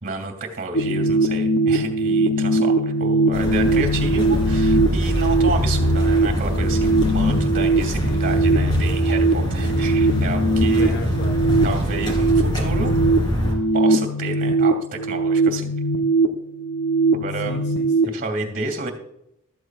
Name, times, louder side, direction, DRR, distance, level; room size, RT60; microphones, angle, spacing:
voice 1, 0.0-11.1 11.6-12.9 13.7-15.7 17.1-17.6 18.1-18.9, right 3 dB, 40° right, 4 dB, 2.6 m, -30 dB
sound 1, 0.7-18.0, right 2 dB, 85° left, 1.0 m, -21 dB
sound 2, 3.3-13.5, equal, 20° left, 3.0 m, -23 dB
voice 2, 8.0-8.5 10.7-11.5 17.4-18.2, equal, 55° left, 4 dB, 1.3 m, -36 dB
15.0 x 13.0 x 2.5 m, 0.79 s
head